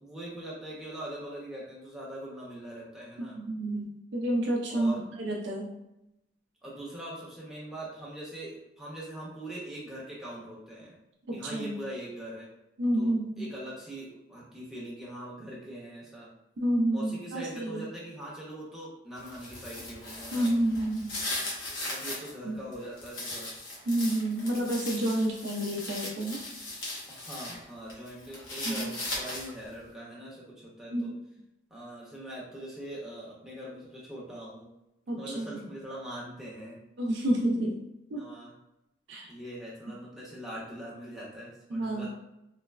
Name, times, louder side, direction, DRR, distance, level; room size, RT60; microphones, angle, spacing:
voice 1, 0.0-3.4 4.7-5.0 6.6-10.9 11.3-12.5 13.0-16.3 16.9-20.5 21.8-23.5 27.1-31.1 31.7-34.7 35.2-36.8 38.1-38.5 39.3-42.1, right 1 dB, ahead, -7 dB, 0.7 m, -42 dB
voice 2, 3.4-5.7 11.3-11.7 12.8-13.5 16.6-17.8 20.3-21.2 22.4-22.7 23.9-26.4 28.6-28.9 30.9-31.1 35.1-35.6 37.0-37.8 38.1-38.3 39.1-39.3 41.7-42.1, right 1 dB, 60° right, -1 dB, 0.4 m, -29 dB
sound 1, 19.2-22.3 22.7-27.6 27.9-29.7, left 2 dB, 85° left, 0.9 m, -38 dB
3.1 x 2.0 x 2.3 m, 0.87 s
head